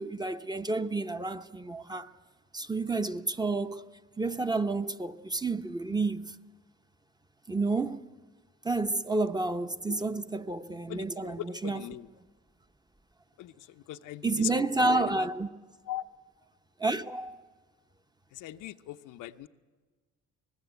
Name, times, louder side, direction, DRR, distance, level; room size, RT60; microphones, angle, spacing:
voice 1, 0.0-2.1 2.5-3.9 4.2-6.4 7.5-8.1 8.6-11.8 14.2-15.5 16.8-17.4, right 3 dB, 15° right, 0.8 m, -30 dB
voice 2, 10.9-12.1 13.4-14.5 14.8-15.3 15.9-16.1 18.3-19.5, left 14 dB, 85° left, 0.8 m, -40 dB
24.5 x 19.5 x 8.1 m
cardioid pair, 90°, 30 cm